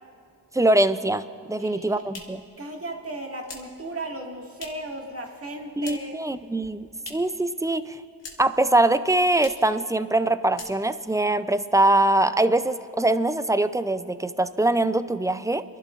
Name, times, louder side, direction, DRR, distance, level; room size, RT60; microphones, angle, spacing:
voice 1, 0.5-2.4 5.8-8.0 8.4-15.6, right 2 dB, 10° right, 12 dB, 0.4 m, -23 dB
voice 2, 1.6-2.0 2.6-6.2, right 1 dB, 30° right, 0 dB, 2.0 m, -36 dB
sound 1, 1.7-5.0 5.3-6.3 6.5-7.4 7.7-8.6 8.9-9.0 9.3-9.7 10.1-10.2 10.5-11.1, left 3 dB, 70° left, 1.9 m, -44 dB
29.5 x 11.5 x 2.5 m, 2.3 s
cardioid pair, 50°, 45 cm